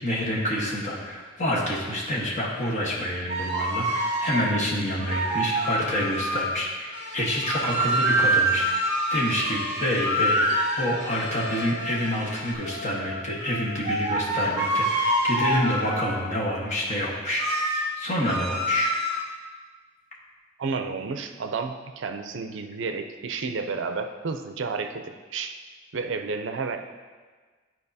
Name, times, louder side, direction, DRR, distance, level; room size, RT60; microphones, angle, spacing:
voice 1, 0.0-18.9, left 1 dB, 35° left, -3 dB, 1.3 m, -28 dB
sound 1, 3.3-4.5 5.0-6.6 7.4-12.0 12.6-16.2 17.4-17.9 18.2-19.2, right 1 dB, 25° right, 1.9 m, -26 dB
sound 2, 6.9-12.5, left 1 dB, 60° left, 0.7 m, -39 dB
voice 2, 20.6-25.5 25.9-26.8, right 4 dB, 65° right, 7 dB, 0.5 m, -31 dB
11.0 x 4.6 x 2.7 m, 1.4 s
head